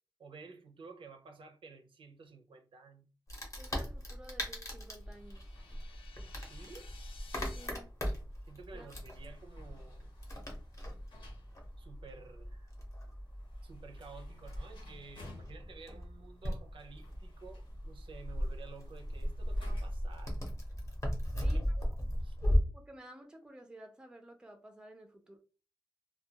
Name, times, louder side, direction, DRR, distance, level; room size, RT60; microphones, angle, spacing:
voice 1, 0.2-3.1 6.4-6.9 8.5-10.1 11.8-12.7 13.6-20.4 21.2-21.6 22.2-22.4, right 4 dB, 70° right, 0.4 m, -52 dB
Wood, 3.3-22.6, equal, 35° left, 0.7 m, -38 dB
voice 2, 3.6-5.6 7.5-7.9 8.7-8.9 21.4-21.8 22.7-25.4, right 1 dB, 10° right, 0.4 m, -53 dB
sound 1, 5.0-7.7, left 5 dB, 80° left, 0.4 m, -57 dB
sound 2, 5.1-20.2, left 2 dB, 65° left, 0.8 m, -60 dB
2.2 x 2.2 x 2.7 m
wide cardioid pair, 165°, 9 cm